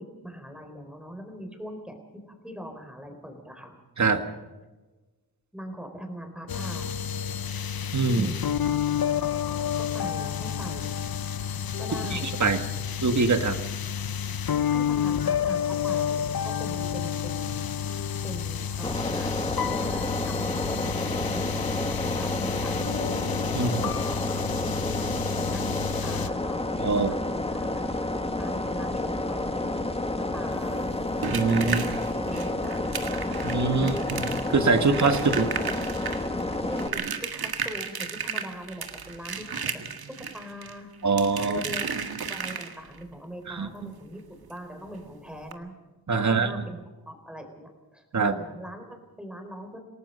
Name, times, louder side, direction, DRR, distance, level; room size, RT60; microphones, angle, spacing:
voice 1, 0.0-3.8 5.5-7.1 8.1-8.6 9.8-11.0 11.8-12.4 14.7-17.6 18.2-19.4 19.7-21.4 21.8-22.9 23.5-26.6 26.9-27.8 28.4-29.9 30.3-30.9 31.7-33.5 35.3-35.4 36.6-39.8 40.2-40.9 41.4-41.9 42.3-45.7 46.2-46.8 47.1-49.8, equal, ahead, 4 dB, 4.0 m, -41 dB
sound 1, 6.5-26.3, left 8 dB, 65° left, 0.9 m, -30 dB
voice 2, 7.9-8.3 12.1-12.6 13.0-13.6 23.5-23.7 26.8-27.1 31.3-31.8 33.4-35.5 41.0-41.6 43.5-43.7 46.1-46.5 48.1-48.4, right 4 dB, 45° right, 8 dB, 1.7 m, -23 dB
sound 2, 18.8-36.9, left 2 dB, 15° left, 1.4 m, -30 dB
sound 3, 30.5-43.0 44.5-44.6 44.9-45.0 45.4-45.5, right 6 dB, 70° right, 1.8 m, -34 dB
28.0 x 18.0 x 5.6 m, 1.2 s
wide cardioid pair, 125°, 38 cm